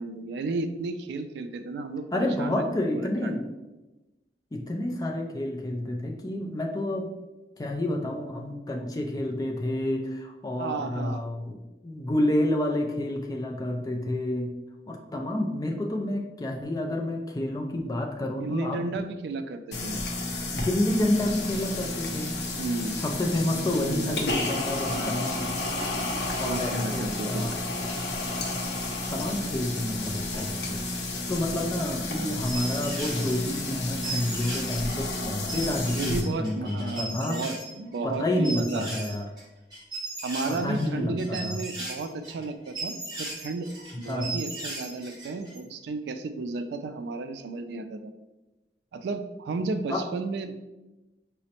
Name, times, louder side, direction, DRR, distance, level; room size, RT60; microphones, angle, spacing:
voice 1, 0.0-2.6 3.0-3.4 10.6-11.2 18.4-20.0 22.6-23.0 23.6-24.2 24.9-25.2 26.4-27.5 31.8-32.4 35.9-39.1 40.2-48.0 48.9-50.5, right 3 dB, 70° right, 9 dB, 0.3 m, -33 dB
voice 2, 2.1-3.4 4.5-7.1 7.6-11.6 11.8-14.5 14.9-18.8 20.5-22.3 23.0-25.9 26.4-27.6 29.1-30.8 31.3-37.4 38.0-39.2 40.5-41.6 44.1-44.4 49.9-50.0, left 1 dB, 20° left, 2 dB, 0.4 m, -29 dB
sound 1, 19.7-36.2, left 2 dB, 70° left, 0.6 m, -31 dB
sound 2, 31.9-37.7 37.9-39.4 39.7-45.6, right 2 dB, 25° right, 0.9 m, -37 dB
5.0 x 2.1 x 2.8 m, 1.0 s
head